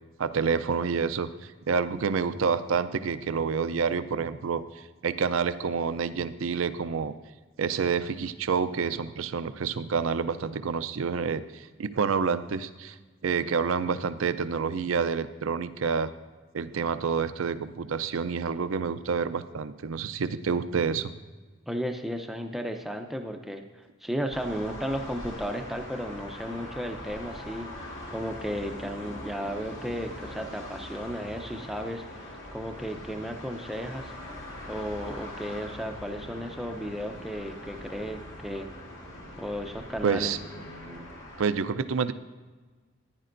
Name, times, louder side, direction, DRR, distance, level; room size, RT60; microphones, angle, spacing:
voice 1, 0.2-1.3 1.7-7.1 7.6-13.0 13.2-16.1 16.5-21.1 40.0-40.4 41.4-42.1, right 5 dB, 75° right, 13 dB, 0.5 m, -28 dB
voice 2, 21.7-27.7 28.1-34.1 34.7-38.7 39.4-40.3, equal, ahead, 5 dB, 0.5 m, -34 dB
sound 1, 24.3-41.5, left 1 dB, 60° left, 2.0 m, -42 dB
15.0 x 10.0 x 2.6 m, 1.3 s
head